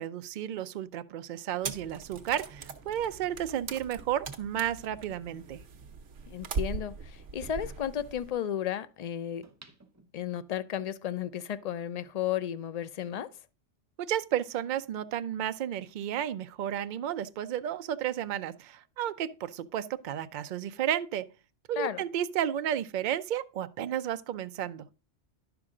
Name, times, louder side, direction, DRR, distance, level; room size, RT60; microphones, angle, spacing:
voice 1, 0.0-5.6 14.0-21.2 21.7-24.9, right 10 dB, 55° right, 0.5 m, -32 dB
sound 1, 1.6-8.3, right 5 dB, 85° right, 1.2 m, -40 dB
voice 2, 6.3-9.4 10.1-13.3 21.8-22.0, left 10 dB, 55° left, 0.4 m, -33 dB
sound 2, 9.4-10.7 11.2-11.3, right 3 dB, 15° right, 0.7 m, -57 dB
10.5 x 5.9 x 3.7 m
omnidirectional pair, 1.2 m